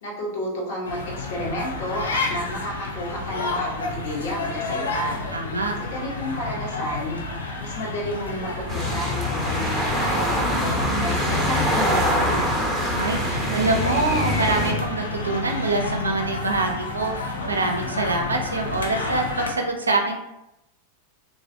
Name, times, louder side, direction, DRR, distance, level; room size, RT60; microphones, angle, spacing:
voice 1, 0.0-5.2 5.8-7.2 7.6-12.5, equal, 55° left, -3 dB, 1.0 m, -31 dB
sound 1, 0.8-19.5, left 3 dB, 70° left, 0.5 m, -30 dB
voice 2, 5.3-5.8 12.9-20.1, right 3 dB, 75° right, 2 dB, 0.4 m, -25 dB
sound 2, 8.7-14.7, equal, 5° right, 0.7 m, -24 dB
3.1 x 2.4 x 2.6 m, 0.90 s
figure-of-eight pair, 90°, 0 cm